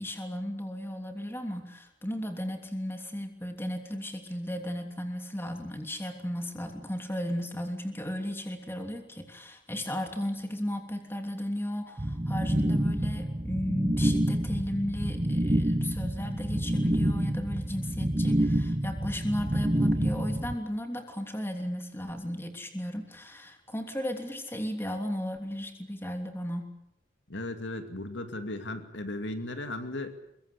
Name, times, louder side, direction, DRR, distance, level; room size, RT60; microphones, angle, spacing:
voice 1, 0.0-26.7, equal, 10° left, 5 dB, 3.1 m, -35 dB
sound 1, 12.0-20.5, right 1 dB, 25° right, 1.1 m, -28 dB
voice 2, 27.3-30.2, left 1 dB, 75° left, 8 dB, 2.5 m, -36 dB
23.5 x 22.5 x 8.6 m, 0.79 s
head